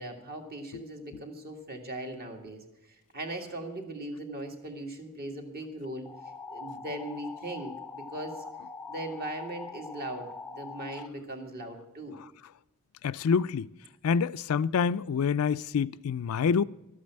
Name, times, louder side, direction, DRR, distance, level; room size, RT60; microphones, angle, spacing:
voice 1, 0.0-6.1 6.5-8.4 8.9-12.2, right 1 dB, 45° right, 2.0 m, -39 dB
sound 1, 6.1-11.1, left 4 dB, 5° left, 0.5 m, -43 dB
voice 2, 13.0-13.7 14.0-16.6, left 6 dB, 85° left, 0.4 m, -27 dB
12.5 x 8.6 x 7.5 m
head